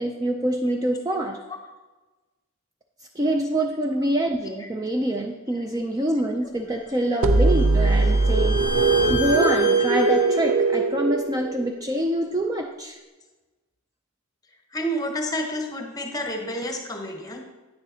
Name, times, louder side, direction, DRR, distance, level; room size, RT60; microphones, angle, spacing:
voice 1, 0.0-1.4 3.2-13.0, right 1 dB, 15° right, 3 dB, 0.4 m, -26 dB
Bowed string instrument, 6.7-10.5, left 3 dB, 35° right, 2.4 m, -32 dB
sound 1, 7.2-12.0, right 3 dB, 70° right, 0.5 m, -20 dB
voice 2, 14.7-17.4, equal, 20° left, 3 dB, 0.9 m, -29 dB
9.0 x 6.7 x 2.8 m, 1.2 s
head